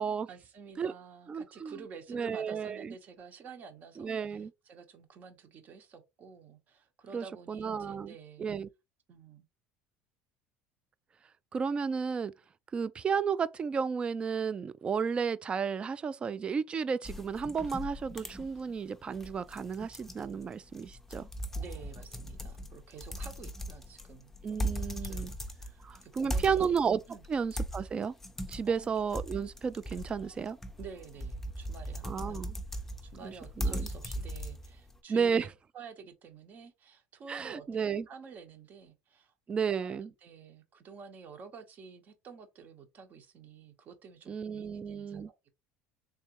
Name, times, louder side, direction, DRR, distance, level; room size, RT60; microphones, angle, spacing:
voice 1, 0.3-8.5 9.1-9.5 21.5-24.3 24.8-26.7 27.1-27.2 28.6-28.9 30.8-35.5 35.7-45.5, right 5 dB, 40° right, 1.0 m, -50 dB
voice 2, 1.3-1.8 2.1-2.9 4.0-4.5 7.1-8.1 8.4-8.7 11.5-12.3 12.7-21.3 24.4-25.3 25.8-27.0 27.3-28.1 28.5-30.6 32.0-32.6 33.2-33.9 35.1-35.5 37.3-38.1 39.5-40.1 44.3-45.3, right 6 dB, 25° right, 0.3 m, -33 dB
sound 1, 17.0-35.0, equal, 5° left, 0.6 m, -39 dB
3.6 x 3.2 x 3.0 m
supercardioid pair, 120°, 4 cm